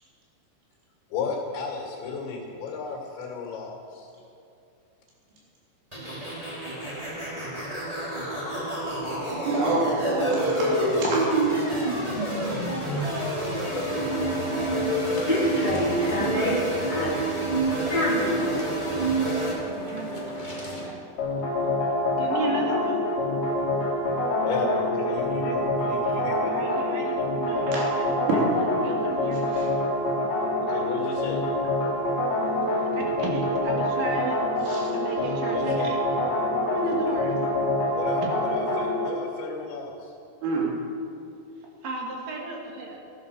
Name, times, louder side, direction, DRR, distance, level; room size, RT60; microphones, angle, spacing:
voice 1, 1.1-4.1 14.6-15.5 17.0-17.1 24.4-26.5 30.6-31.4 35.5-35.9 36.9-37.0 37.9-40.2, left 5 dB, 80° left, 0 dB, 4.5 m, -34 dB
sound 1, 5.9-19.5, right 2 dB, 10° right, 2.6 m, -28 dB
voice 2, 9.4-11.3 27.7-27.8 29.3-29.7 34.7-34.9 40.4-40.7, right 2 dB, 80° right, -5 dB, 5.8 m, -28 dB
sound 2, 13.6-20.9, equal, 65° left, 0.4 m, -29 dB
voice 3, 19.7-20.3 20.6-21.0 22.2-23.1 26.5-29.7 32.8-34.4 34.9-36.2 36.7-37.4 37.8-37.9 38.2-38.3 38.8-38.9 41.8-43.0, right 2 dB, 60° right, -1 dB, 3.0 m, -34 dB
sound 3, 21.2-39.1, left 1 dB, 35° left, 2.8 m, -26 dB
15.0 x 11.0 x 6.7 m, 2.6 s
omnidirectional pair, 5.1 m